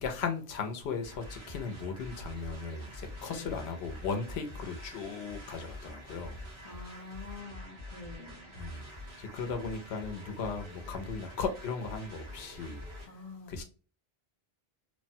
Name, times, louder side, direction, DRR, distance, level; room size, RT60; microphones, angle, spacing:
voice 1, 0.0-2.9 3.2-6.4 8.6-8.8 9.3-12.8 13.5-13.6, left 5 dB, 90° left, 0.9 m, -36 dB
sound 1, 1.0-13.1, left 1 dB, 30° right, 1.3 m, -46 dB
voice 2, 3.3-3.7 6.6-8.5 13.1-13.6, left 3 dB, 40° left, 0.8 m, -47 dB
3.1 x 2.1 x 2.6 m
omnidirectional pair, 1.0 m